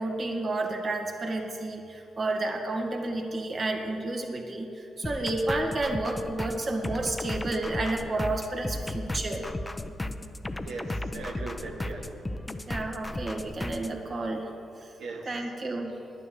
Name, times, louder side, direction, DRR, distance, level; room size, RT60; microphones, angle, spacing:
voice 1, 0.0-9.5 12.7-14.5 14.8-14.9 15.3-15.9, right 2 dB, 50° right, 2 dB, 2.1 m, -31 dB
sound 1, 5.0-13.9, left 1 dB, 20° left, 0.7 m, -35 dB
voice 2, 10.6-12.3 15.0-15.6, right 3 dB, 75° right, 1 dB, 1.4 m, -39 dB
10.0 x 9.7 x 8.0 m, 2.6 s
supercardioid pair, 60°, 0 cm